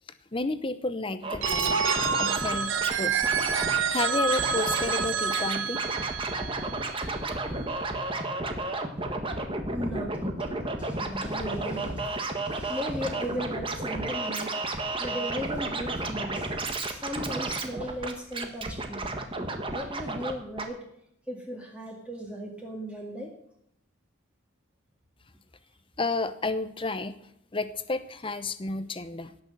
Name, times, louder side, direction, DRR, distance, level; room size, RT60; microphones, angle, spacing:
voice 1, 0.3-1.8 2.2-3.2 3.9-5.8 26.0-27.1 27.5-29.3, left 3 dB, 25° left, 12 dB, 0.8 m, -31 dB
Scratching (performance technique), 1.2-2.9 3.2-3.8 4.3-5.0 5.3-20.3 20.6-20.7, right 2 dB, 25° right, 1.4 m, -32 dB
Telephone, 1.4-7.2, right 6 dB, 60° right, 1.0 m, -28 dB
voice 2, 9.7-10.5 10.8-19.0 19.7-20.9 21.3-23.4, equal, 5° right, 0 dB, 2.0 m, -37 dB
17.5 x 6.4 x 7.7 m, 0.75 s
head